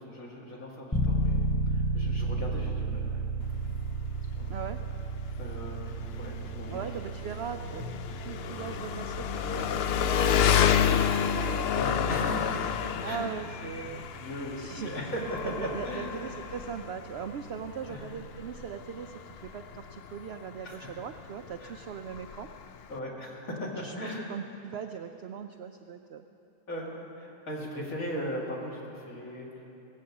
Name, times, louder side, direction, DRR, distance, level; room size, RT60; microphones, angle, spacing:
voice 1, 0.0-3.2 4.4-4.6 5.4-6.8 11.7-12.6 13.0-13.2 14.1-16.1 17.9-18.0 20.6-20.9 21.6-21.7 22.9-24.3 26.7-29.6, equal, 60° left, -3 dB, 2.8 m, -38 dB
sound 1, 0.9-17.7, right 2 dB, 15° left, 0.4 m, -34 dB
Engine, 3.4-23.0, left 8 dB, 85° left, 0.5 m, -31 dB
voice 2, 4.5-4.8 6.7-10.9 11.2-11.7 12.1-12.4 13.0-14.0 14.6-15.1 15.4-22.5 23.8-26.2, right 7 dB, 75° right, 7 dB, 0.6 m, -40 dB
18.0 x 8.4 x 7.3 m, 2.9 s
omnidirectional pair, 1.6 m